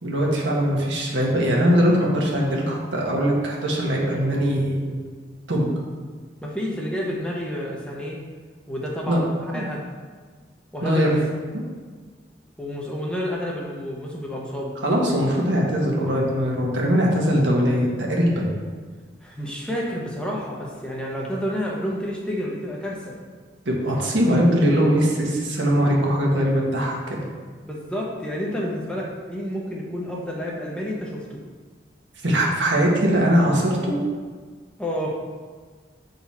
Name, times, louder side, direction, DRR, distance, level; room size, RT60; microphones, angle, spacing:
voice 1, 0.0-5.0 5.5-5.7 9.1-9.2 9.5-9.7 10.8-11.1 11.5-11.6 14.8-18.5 23.6-27.2 32.2-34.0, equal, 85° right, -2 dB, 1.4 m, -21 dB
voice 2, 6.4-8.2 8.7-9.9 10.7-11.2 12.6-14.7 19.2-23.1 27.6-31.4 34.8-35.2, equal, 5° left, -3 dB, 0.8 m, -30 dB
7.4 x 4.0 x 4.2 m, 1.5 s
head